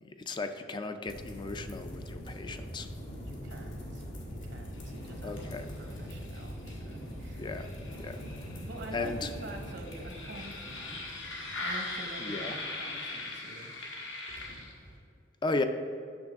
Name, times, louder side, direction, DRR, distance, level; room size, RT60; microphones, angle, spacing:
voice 1, 0.0-2.9 5.2-5.7 7.4-8.2 8.9-9.3 12.2-12.6 15.4-15.6, left 3 dB, 25° left, 8 dB, 0.3 m, -35 dB
sound 1, 1.1-15.0, left 1 dB, 85° left, 1.6 m, -40 dB
voice 2, 3.2-7.5 8.6-11.0 11.6-13.7, right 1 dB, 70° right, 3 dB, 0.9 m, -46 dB
8.8 x 6.2 x 3.5 m, 2.4 s
head